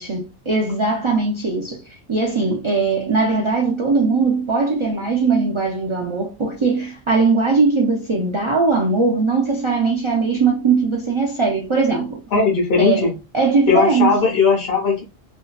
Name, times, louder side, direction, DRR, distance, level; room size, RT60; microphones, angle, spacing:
voice 1, 0.0-1.8 2.1-12.2 12.8-13.1 13.3-14.3, right 4 dB, 50° right, 0.3 m, -20 dB
voice 2, 12.3-13.1 13.7-15.0, left 5 dB, 70° left, 0.9 m, -17 dB
2.7 x 2.3 x 2.2 m
omnidirectional pair, 1.1 m